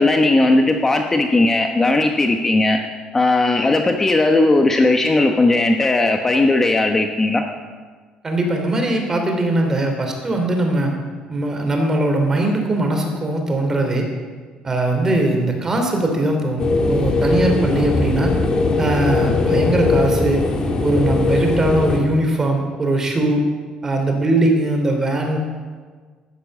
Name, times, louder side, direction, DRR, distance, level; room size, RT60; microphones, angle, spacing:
voice 1, 0.0-2.8 3.1-7.4, left 2 dB, 15° left, 4 dB, 1.0 m, -17 dB
voice 2, 8.2-10.9 11.3-14.1 14.6-18.3 18.8-20.4 20.8-23.4 23.8-25.4, right 2 dB, 20° right, 3 dB, 3.2 m, -20 dB
sound 1, 16.6-22.0, left 3 dB, 30° left, 2.4 m, -20 dB
13.0 x 12.5 x 8.4 m, 1.5 s
cardioid pair, 145°, 2 cm